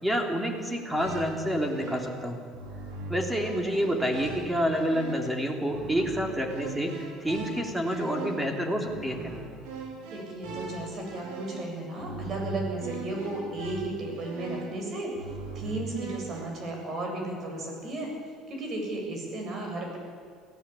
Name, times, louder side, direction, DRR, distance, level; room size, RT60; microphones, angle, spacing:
voice 1, 0.0-2.4 3.1-9.4, equal, 5° right, 2 dB, 3.3 m, -28 dB
sound 1, 0.7-16.4, right 3 dB, 85° right, 4.9 m, -40 dB
voice 2, 10.0-18.1 18.5-20.0, right 2 dB, 40° right, 1 dB, 7.5 m, -34 dB
23.0 x 16.5 x 8.5 m, 2.1 s
cardioid pair, 130°, 0 cm